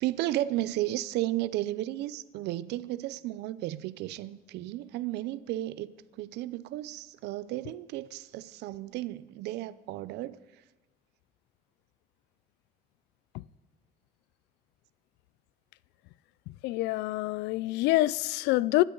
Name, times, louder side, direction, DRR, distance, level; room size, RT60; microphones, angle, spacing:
voice 1, 0.0-10.4, right 15 dB, 85° right, 0.6 m, -33 dB
voice 2, 16.5-18.8, left 18 dB, 85° left, 0.4 m, -27 dB
25.5 x 12.0 x 3.9 m
cardioid pair, 110°, 17 cm